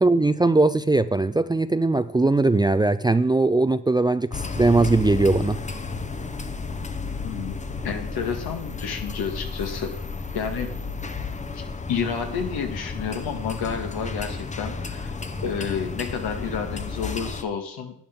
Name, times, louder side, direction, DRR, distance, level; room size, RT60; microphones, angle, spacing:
voice 1, 0.0-5.6, right 2 dB, 10° right, 0.4 m, -20 dB
sound 1, 4.3-17.4, left 4 dB, 20° left, 0.8 m, -32 dB
voice 2, 7.2-9.9 10.3-10.7 11.5-11.6 11.9-15.1 15.4-17.9, left 6 dB, 80° left, 2.0 m, -30 dB
11.5 x 9.2 x 3.8 m
cardioid pair, 90°, 37 cm